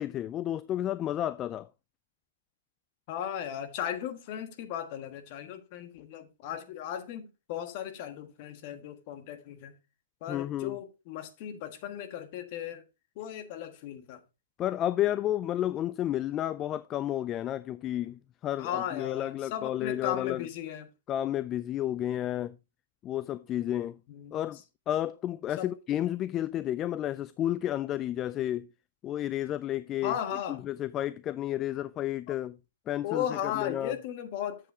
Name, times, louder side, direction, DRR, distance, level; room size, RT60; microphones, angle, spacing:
voice 1, 0.0-1.7 10.3-10.8 14.6-20.4 21.1-22.6 23.0-24.0 24.3-24.6 24.9-28.7 29.0-30.1 30.6-32.6 32.9-33.9, left 12 dB, 25° left, 0.3 m, -31 dB
voice 2, 3.1-9.8 10.2-12.8 13.1-14.2 18.6-20.9 24.1-24.5 25.6-25.7 30.0-30.6 33.0-34.7, left 10 dB, 45° left, 1.4 m, -36 dB
7.7 x 7.6 x 3.5 m
hypercardioid pair, 120°, 0 cm